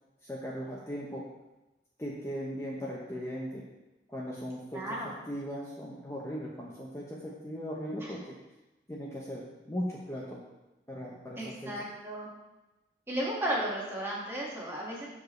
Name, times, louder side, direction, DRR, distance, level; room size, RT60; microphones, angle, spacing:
voice 1, 0.2-1.2 2.0-3.6 4.1-4.8 5.3-8.2 8.9-10.4 10.9-11.8, equal, 15° left, -4 dB, 0.9 m, -38 dB
voice 2, 4.7-5.1 8.0-8.1 11.4-12.3 13.1-15.1, right 1 dB, 15° right, -5 dB, 1.8 m, -34 dB
13.0 x 4.9 x 3.2 m, 1.0 s
head